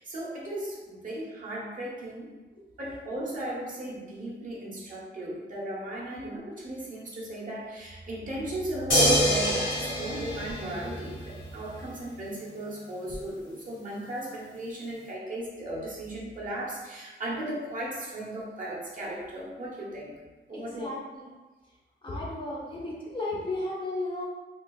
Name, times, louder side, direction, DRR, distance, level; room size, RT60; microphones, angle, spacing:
voice 1, 0.0-2.3 2.8-20.2 20.5-20.9, right 1 dB, 40° right, -5 dB, 0.9 m, -36 dB
sound 1, 8.9-11.4 13.1-13.2, equal, 70° left, 1.2 m, -25 dB
voice 2, 20.5-21.3 22.0-24.3, left 2 dB, 25° left, -5 dB, 0.6 m, -34 dB
3.9 x 2.9 x 2.3 m, 1.2 s
wide cardioid pair, 165°, 21 cm